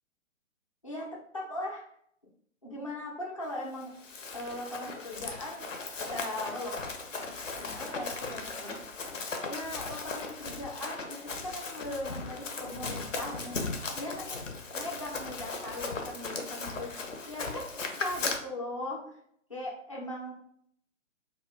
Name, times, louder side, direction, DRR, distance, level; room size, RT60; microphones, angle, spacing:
voice 1, 0.8-1.8 2.6-3.9 4.3-5.6 6.0-6.8 7.6-8.9 9.4-13.6 13.9-14.4 14.7-16.9 17.3-19.0 19.5-20.3, left 1 dB, 25° left, -3 dB, 0.4 m, -39 dB
Run, 3.8-18.4, left 3 dB, 70° left, 0.6 m, -37 dB
2.1 x 2.1 x 3.4 m, 0.68 s
figure-of-eight pair, 135°, 40 cm